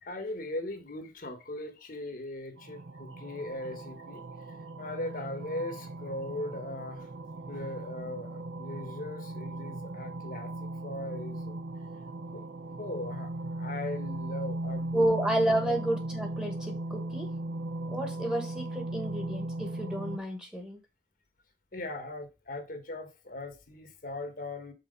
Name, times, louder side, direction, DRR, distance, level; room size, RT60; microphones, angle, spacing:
voice 1, 0.0-4.2 4.8-7.1 7.5-11.6 12.3-12.4 12.8-15.1 15.6-15.8 21.7-24.7, left 2 dB, 50° left, 1.2 m, -39 dB
sound 1, 2.6-20.2, right 2 dB, 70° right, 0.7 m, -38 dB
voice 2, 14.9-17.3 17.9-20.8, right 1 dB, 5° right, 1.4 m, -30 dB
5.7 x 4.3 x 5.3 m
head